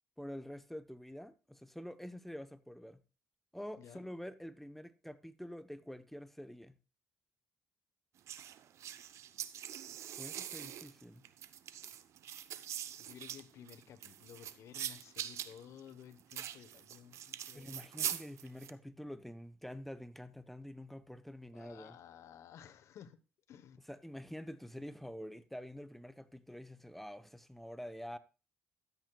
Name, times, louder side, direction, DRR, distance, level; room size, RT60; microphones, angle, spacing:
voice 1, 0.2-3.0 3.5-6.8 10.2-11.3 17.5-22.0 23.9-28.2, equal, 5° left, 0.8 m, -47 dB
voice 2, 3.8-4.1 13.0-17.9 21.5-23.2 23.5-23.8, left 9 dB, 70° left, 1.0 m, -55 dB
sound 1, 8.3-18.7, right 10 dB, 70° right, 0.7 m, -43 dB
13.5 x 9.1 x 2.3 m
supercardioid pair, 65°, 5 cm